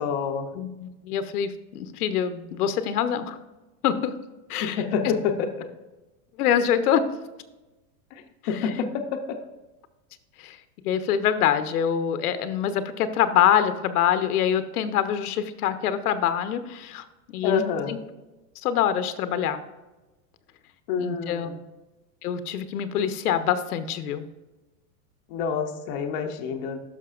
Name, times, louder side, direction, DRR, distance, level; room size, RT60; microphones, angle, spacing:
voice 1, 0.0-0.5 4.6-5.5 8.1-9.4 17.4-18.0 20.9-21.6 25.3-26.8, left 6 dB, 30° left, 4 dB, 0.6 m, -28 dB
voice 2, 0.5-3.4 3.8-4.1 4.5-4.8 6.4-7.0 10.4-10.6 10.8-17.6 17.9-18.0 18.6-19.6 21.0-21.5 22.2-24.2, left 9 dB, 85° left, 10 dB, 0.9 m, -25 dB
12.0 x 5.9 x 2.4 m, 1.1 s
supercardioid pair, 170°, 44 cm